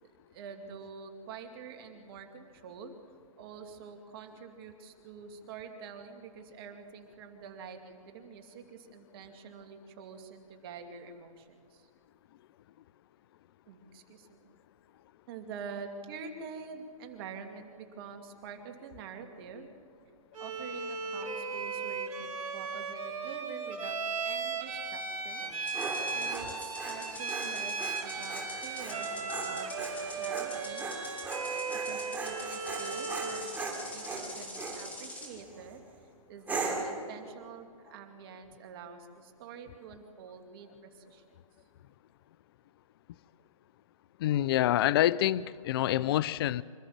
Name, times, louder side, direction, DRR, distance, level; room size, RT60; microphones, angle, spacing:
voice 1, 0.0-3.0 3.4-11.9 13.7-14.5 15.3-19.7 20.4-30.9 31.7-35.8 36.3-41.4, right 6 dB, 40° right, 4 dB, 2.6 m, -46 dB
Bowed string instrument, 20.3-33.5, right 4 dB, 80° right, 4.5 m, -36 dB
Dog, 25.4-34.8 35.4-35.8 36.5-37.0, right 3 dB, 10° right, 3.3 m, -39 dB
sound 1, 25.6-35.3, left 1 dB, 10° left, 3.8 m, -45 dB
voice 2, 44.2-46.6, left 13 dB, 45° left, 20 dB, 0.5 m, -26 dB
26.5 x 14.0 x 7.4 m, 2.2 s
hypercardioid pair, 145°, 18 cm